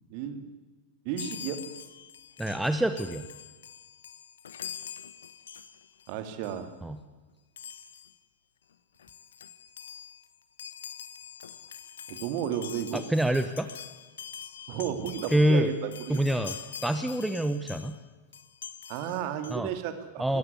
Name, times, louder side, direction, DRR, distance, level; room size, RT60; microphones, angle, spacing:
voice 1, 0.1-0.5 1.0-1.6 6.1-6.7 12.1-13.0 14.7-16.2 18.9-20.4, right 9 dB, 45° right, 9 dB, 2.5 m, -33 dB
Chime, 1.2-6.1 6.4-6.7 7.6-8.2 8.7-8.8 9.0-18.0 18.3-19.6, left 8 dB, 65° left, 1.1 m, -44 dB
voice 2, 2.4-3.3 6.8-7.0 12.9-13.7 15.3-15.7 16.1-18.0 19.5-19.7 20.2-20.4, right 1 dB, 5° right, 10 dB, 1.1 m, -26 dB
21.5 x 17.0 x 9.6 m, 1.3 s
figure-of-eight pair, 90°, 0 cm